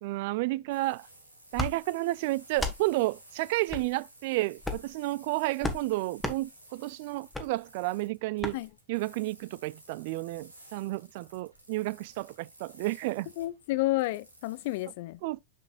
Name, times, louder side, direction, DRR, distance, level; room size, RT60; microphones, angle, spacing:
voice 1, 0.0-1.1 1.5-8.6 8.9-13.3 15.2-15.4, right 19 dB, 50° right, 0.3 m, -31 dB
sound 1, 0.7-14.9, right 1 dB, 85° right, 2.6 m, -55 dB
sound 2, 1.5-1.7 2.5-2.8 3.7-3.9 4.6-4.9 5.6-5.8 6.2-6.4 7.3-7.5 8.4-8.6, left 2 dB, 5° left, 1.4 m, -32 dB
voice 2, 13.4-15.2, left 18 dB, 50° left, 0.5 m, -30 dB
6.9 x 6.8 x 2.4 m
figure-of-eight pair, 90°, 0 cm